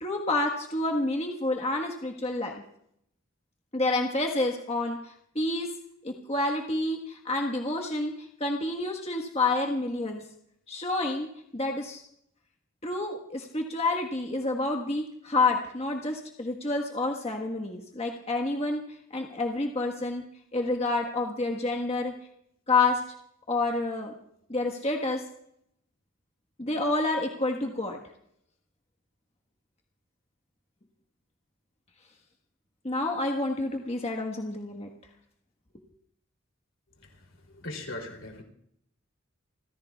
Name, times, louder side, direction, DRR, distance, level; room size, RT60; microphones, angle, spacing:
voice 1, 0.0-2.6 3.7-5.7 6.0-10.2 10.7-11.3 11.5-12.0 12.8-20.2 20.5-22.1 22.7-23.0 23.5-24.1 24.5-25.2 26.6-28.0 32.8-34.9, left 2 dB, 30° left, 1 dB, 1.4 m, -29 dB
voice 2, 37.5-38.4, left 2 dB, 65° left, 1 dB, 3.1 m, -39 dB
29.0 x 15.5 x 2.4 m, 0.71 s
head